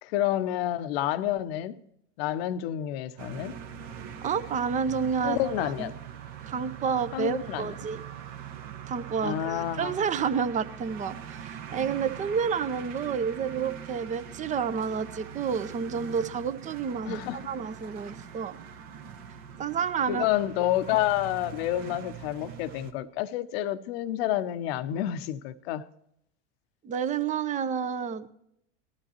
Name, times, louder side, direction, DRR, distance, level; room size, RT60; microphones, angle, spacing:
voice 1, 0.0-1.7 2.2-3.6 5.2-5.9 7.1-7.7 9.2-10.0 17.1-17.4 20.1-25.8, left 13 dB, 60° left, 0.8 m, -29 dB
sound 1, 3.2-22.9, right 8 dB, 50° right, 1.3 m, -42 dB
voice 2, 4.2-5.9 6.5-8.0 8.9-18.6 19.6-20.3 26.8-28.3, right 6 dB, 20° right, 0.7 m, -30 dB
18.5 x 12.5 x 2.9 m
hypercardioid pair, 85°, 35 cm